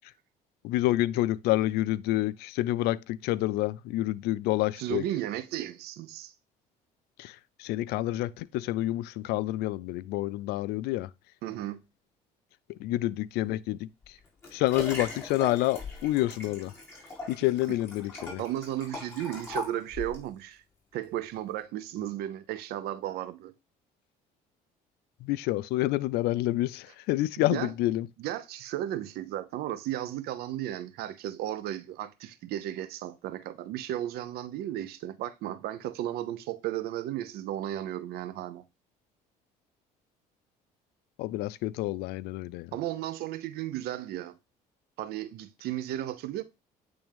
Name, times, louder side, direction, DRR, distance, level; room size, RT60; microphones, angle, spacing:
voice 1, 0.6-5.0 7.2-7.3 7.6-11.1 12.8-13.9 14.5-16.7 17.3-18.4 25.2-28.1 41.2-42.7, left 16 dB, 80° left, 0.4 m, -28 dB
voice 2, 4.8-6.3 11.4-11.8 18.4-20.6 20.9-23.5 27.4-27.7 28.2-38.6 42.7-44.4 45.0-46.4, right 12 dB, 80° right, 0.7 m, -34 dB
Liquid, 14.0-20.3 20.9-21.0, left 2 dB, 15° left, 4.4 m, -40 dB
8.8 x 3.5 x 3.4 m
cardioid pair, 95°, 16 cm